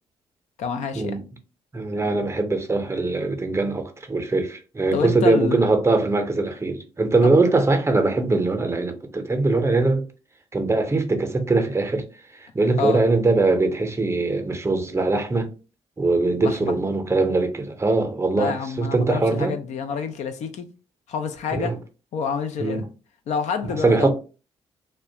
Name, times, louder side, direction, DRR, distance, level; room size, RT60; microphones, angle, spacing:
voice 1, 0.6-1.2 4.9-5.6 7.2-7.4 12.8-13.0 16.4-16.7 18.4-20.7 21.1-21.8 22.1-22.9 23.3-24.1, left 6 dB, 70° left, 0.4 m, -28 dB
voice 2, 1.7-10.0 10.5-12.0 12.3-15.5 16.0-19.5 21.5-21.8 22.6-22.9 23.8-24.1, right 3 dB, 20° right, 0.6 m, -21 dB
2.3 x 2.1 x 2.7 m
supercardioid pair, 55°, 12 cm